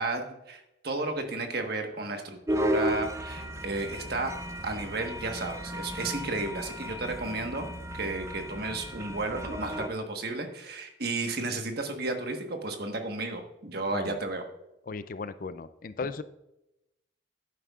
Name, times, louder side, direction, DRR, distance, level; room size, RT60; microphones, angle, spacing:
voice 1, 0.0-4.3 4.6-7.7 7.9-14.4, right 2 dB, 50° right, 4 dB, 1.3 m, -33 dB
sound 1, 2.5-9.9, equal, 15° right, 0.4 m, -34 dB
voice 2, 14.9-16.2, left 4 dB, 45° left, 13 dB, 0.4 m, -36 dB
11.0 x 9.1 x 2.4 m, 0.89 s
head